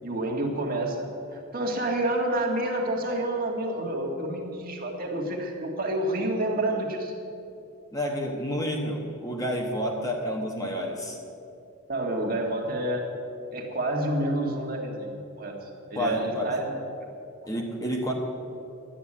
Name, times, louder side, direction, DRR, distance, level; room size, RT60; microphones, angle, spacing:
voice 1, 0.0-1.0 1.3-7.1 11.9-13.0 13.5-15.5 15.9-16.7, right 1 dB, 40° right, 1 dB, 1.7 m, -28 dB
voice 2, 7.9-11.2 15.9-16.5 17.4-18.1, equal, 15° left, 1 dB, 1.2 m, -29 dB
11.5 x 9.1 x 8.7 m, 2.7 s
head